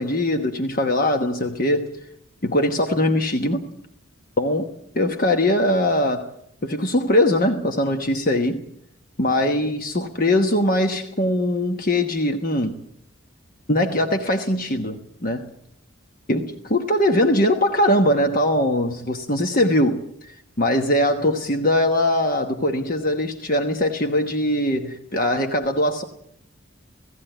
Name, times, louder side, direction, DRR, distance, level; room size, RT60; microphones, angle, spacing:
voice 1, 0.0-1.9 2.4-3.6 4.4-6.3 6.6-8.6 9.2-12.8 13.7-15.4 16.3-26.0, left 1 dB, 45° left, 1.2 m, -21 dB
17.5 x 16.5 x 9.1 m
head